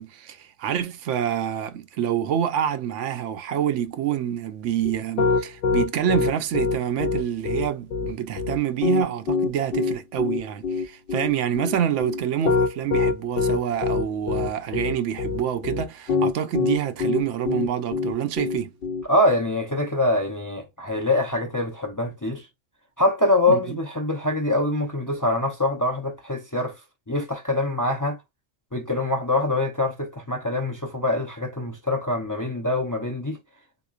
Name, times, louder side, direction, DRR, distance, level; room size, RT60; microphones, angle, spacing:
voice 1, 0.0-18.7 23.5-23.8, right 9 dB, 90° right, 1.0 m, -27 dB
Piano, 4.8-19.0, left 4 dB, 60° left, 0.7 m, -24 dB
voice 2, 19.1-22.5 23.0-26.8 27.1-28.2 28.7-33.4, left 2 dB, 25° left, 0.5 m, -24 dB
3.8 x 2.9 x 2.4 m
omnidirectional pair, 1.2 m